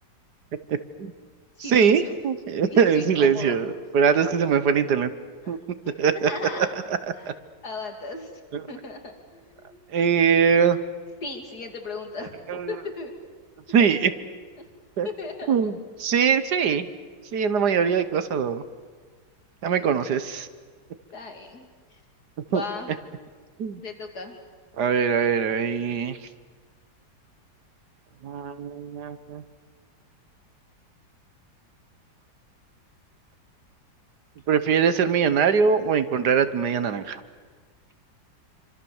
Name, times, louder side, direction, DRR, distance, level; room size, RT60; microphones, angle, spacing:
voice 1, 0.7-1.1 1.7-5.1 5.5-5.6 6.0-6.3 7.3-7.4 8.5-8.6 9.9-10.8 12.5-12.7 13.7-14.1 15.0-15.1 15.5-16.9 17.3-18.6 19.6-20.5 22.5-22.6 23.6-23.8 24.8-26.2 28.2-29.4 34.5-37.2, right 6 dB, 65° right, 12 dB, 1.6 m, -22 dB
voice 2, 1.6-2.1 2.6-3.6 4.2-4.3 5.4-5.6 5.8-6.7 7.1-7.3 7.6-8.3 8.7-9.8 11.2-13.1 13.8-13.9 14.6-14.7 15.0-15.7 19.6-20.1 21.1-22.0 22.5-22.9 23.8-24.4, left 3 dB, 55° left, 4 dB, 3.3 m, -37 dB
27.5 x 25.5 x 7.2 m, 1.5 s
omnidirectional pair, 2.0 m